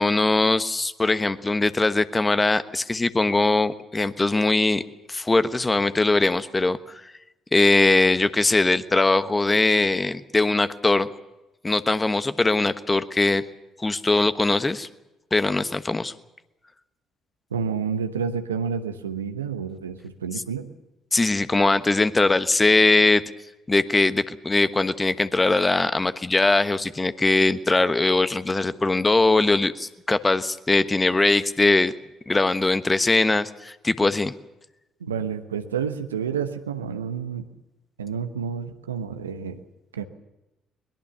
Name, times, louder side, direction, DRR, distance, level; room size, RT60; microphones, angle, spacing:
voice 1, 0.0-4.8 5.1-7.0 7.5-11.1 11.6-13.4 13.8-14.9 15.3-16.1 21.1-23.2 23.7-31.9 32.3-34.3, left 2 dB, 20° left, 12 dB, 1.2 m, -21 dB
voice 2, 17.5-20.7 35.0-37.5 38.0-39.6 39.9-40.0, right 6 dB, 85° right, 8 dB, 1.0 m, -29 dB
22.5 x 21.0 x 6.9 m, 0.98 s
figure-of-eight pair, 45°, 0 cm